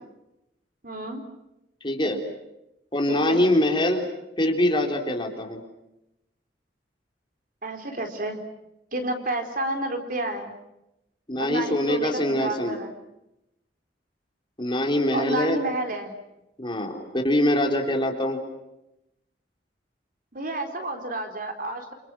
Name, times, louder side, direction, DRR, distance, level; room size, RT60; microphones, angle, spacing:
voice 1, 0.8-1.3 3.1-3.4 7.6-8.4 8.9-10.5 11.4-12.9 15.1-16.1 20.3-21.9, right 1 dB, 50° right, 5 dB, 4.2 m, -30 dB
voice 2, 1.8-2.2 2.9-4.1 4.4-5.6 11.3-12.8 14.6-15.6 16.6-18.4, left 1 dB, 30° left, 2 dB, 4.0 m, -23 dB
29.0 x 28.5 x 6.3 m, 0.88 s
head